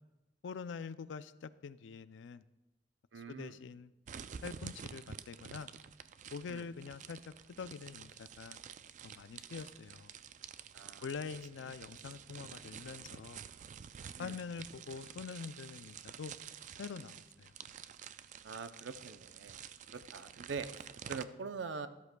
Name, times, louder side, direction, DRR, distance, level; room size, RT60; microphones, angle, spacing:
voice 1, 0.4-2.4 3.3-3.9 4.4-5.7 6.3-8.6 9.0-10.1 11.0-13.4 14.2-16.3 16.8-17.5, left 5 dB, 90° left, 15 dB, 0.4 m, -45 dB
voice 2, 3.1-3.6 6.5-6.7 10.7-11.1 11.6-11.7 14.2-14.3 18.4-19.6 19.9-21.9, right 5 dB, 85° right, 10 dB, 0.6 m, -44 dB
sound 1, 4.1-21.2, right 8 dB, 40° right, 0.3 m, -50 dB
13.5 x 12.5 x 2.3 m, 1.0 s
head